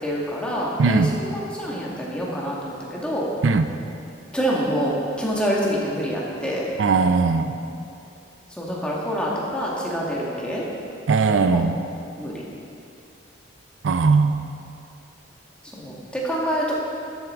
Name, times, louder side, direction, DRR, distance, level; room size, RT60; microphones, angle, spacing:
voice 1, 0.0-3.3 4.3-6.6 8.6-10.6 11.4-11.6 12.2-12.4 15.7-16.7, equal, 5° left, -5 dB, 1.6 m, -26 dB
voice 2, 0.8-1.1 3.4-3.7 6.8-7.6 11.1-11.8 13.8-14.4, right 4 dB, 85° right, 9 dB, 0.5 m, -19 dB
13.0 x 8.0 x 3.6 m, 2.6 s
head